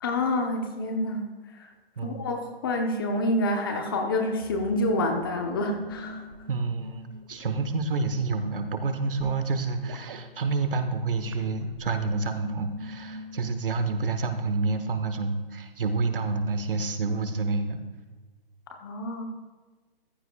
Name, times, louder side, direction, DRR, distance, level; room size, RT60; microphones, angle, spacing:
voice 1, 0.0-1.2 1.5-1.7 2.0-6.2 18.7-19.2, left 1 dB, 25° left, 4 dB, 0.8 m, -28 dB
sound 1, 4.4-13.5, equal, 30° right, 0.6 m, -45 dB
voice 2, 6.5-7.0 7.3-17.8, right 3 dB, 65° right, 8 dB, 1.2 m, -28 dB
14.5 x 11.0 x 2.3 m, 1.3 s
hypercardioid pair, 165°, 30 cm